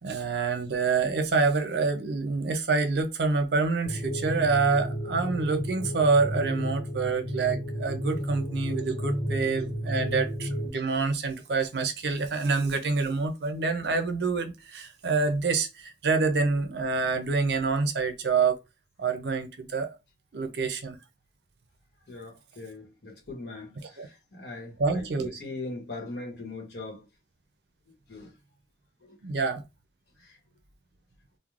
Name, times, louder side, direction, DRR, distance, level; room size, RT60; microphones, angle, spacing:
voice 1, 0.0-18.6 19.0-20.0 20.3-21.0 24.0-24.1 24.8-25.3 29.2-29.6, right 4 dB, 65° right, 0.5 m, -27 dB
sound 1, 3.9-10.7, equal, 35° left, 0.7 m, -32 dB
voice 2, 22.1-27.1 28.1-28.3 29.0-29.2 30.2-30.4, left 2 dB, 70° left, 1.0 m, -40 dB
3.1 x 2.0 x 2.4 m
head